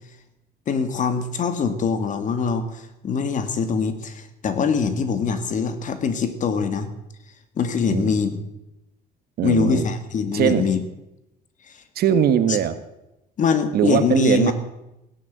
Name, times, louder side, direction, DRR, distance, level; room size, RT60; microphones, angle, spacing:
voice 1, 0.7-6.9 7.6-8.4 9.4-10.8 11.7-11.8 12.5-12.6 13.4-14.5, left 5 dB, 50° left, 9 dB, 2.2 m, -23 dB
voice 2, 9.4-9.9 10.3-10.6 11.9-12.8 13.7-14.5, right 9 dB, 65° right, 11 dB, 1.5 m, -20 dB
16.5 x 10.5 x 7.7 m, 0.90 s
cardioid pair, 110°, 17 cm